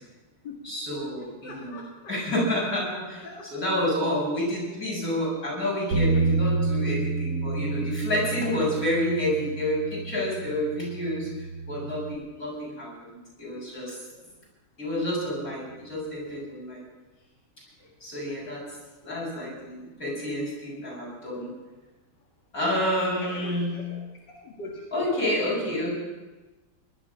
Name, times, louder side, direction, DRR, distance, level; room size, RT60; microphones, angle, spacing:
voice 1, 0.6-1.8 2.1-12.9 13.4-14.0 14.8-16.8 18.0-18.6 19.0-21.5 22.5-23.8 24.9-26.0, left 1 dB, 40° left, -5 dB, 8.2 m, -29 dB
voice 2, 1.2-1.9 3.2-3.5 6.1-6.2 8.2-8.5 14.2-14.4 17.8-17.9 23.2-24.0 24.4-25.6, left 2 dB, 55° left, -1 dB, 2.7 m, -42 dB
Bass guitar, 5.9-12.2, right 3 dB, 80° right, 2.4 m, -29 dB
19.0 x 12.5 x 5.6 m, 1.1 s
omnidirectional pair, 2.2 m